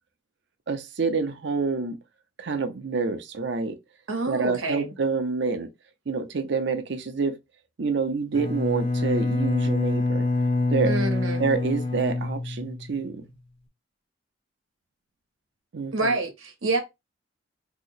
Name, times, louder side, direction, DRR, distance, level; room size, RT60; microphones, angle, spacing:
voice 1, 0.7-2.0 2.4-3.8 4.3-5.7 6.1-7.4 7.8-10.3 10.7-10.9 11.4-13.2 15.7-16.2, right 4 dB, 60° right, 0.6 m, -27 dB
voice 2, 4.1-4.9 10.8-11.4 15.9-16.8, right 3 dB, 85° right, 1.0 m, -27 dB
Bowed string instrument, 8.3-13.1, left 2 dB, 30° left, 0.5 m, -26 dB
2.9 x 2.1 x 3.9 m
head